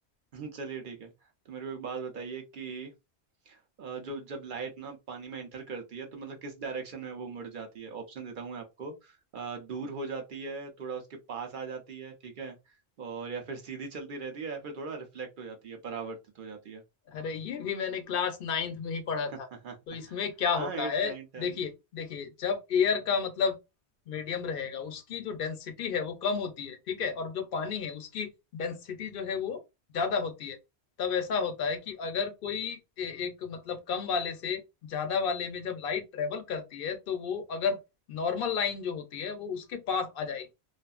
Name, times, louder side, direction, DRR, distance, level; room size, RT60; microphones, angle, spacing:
voice 1, 0.3-2.9 3.5-16.8 19.3-19.4 19.6-19.8 20.1-20.2 20.6-21.6, right 5 dB, 55° right, 0.8 m, -39 dB
voice 2, 17.1-19.5 19.9-23.6 24.1-29.6 29.9-30.6 31.0-37.8 38.1-40.5, left 6 dB, 65° left, 0.7 m, -32 dB
2.6 x 2.4 x 2.3 m
omnidirectional pair, 1.1 m